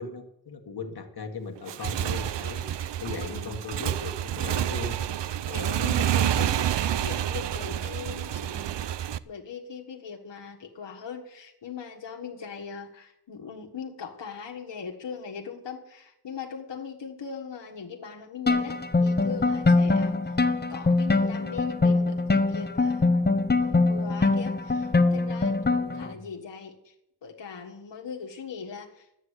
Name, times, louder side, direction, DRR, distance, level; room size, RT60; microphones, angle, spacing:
voice 1, 0.0-5.0 25.9-26.3, left 4 dB, 65° left, 4 dB, 1.6 m, -38 dB
Motorcycle / Engine, 1.6-9.2, right 11 dB, 85° right, 0.6 m, -28 dB
voice 2, 3.2-3.7 5.0-8.9 9.2-20.3 20.7-26.9 27.2-29.2, left 6 dB, 85° left, 2 dB, 1.5 m, -40 dB
sound 1, 18.5-26.1, left 3 dB, 25° left, 0.8 m, -23 dB
11.5 x 9.0 x 8.1 m, 0.83 s
wide cardioid pair, 145°, 42 cm